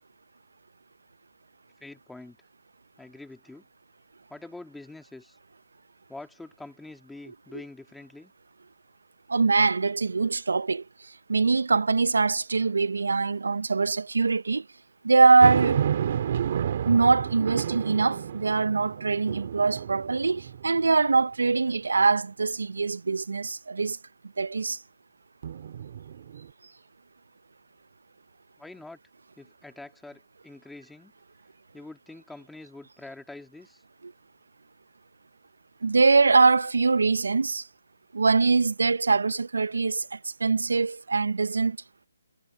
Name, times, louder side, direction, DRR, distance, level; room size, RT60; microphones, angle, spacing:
voice 1, 1.8-2.4 3.0-3.7 4.3-5.4 6.1-8.3 28.6-29.0 29.4-31.1 31.7-33.8, left 2 dB, 5° left, 2.1 m, -45 dB
voice 2, 9.3-10.8 11.3-14.6 15.0-15.8 16.9-24.0 24.4-24.8 34.0-34.1 35.8-37.6 38.1-41.8, right 4 dB, 85° right, 0.7 m, -23 dB
sound 1, 15.4-20.9 21.5-21.6 25.4-26.5, right 9 dB, 45° right, 2.4 m, -30 dB
hypercardioid pair, 160°, 0 cm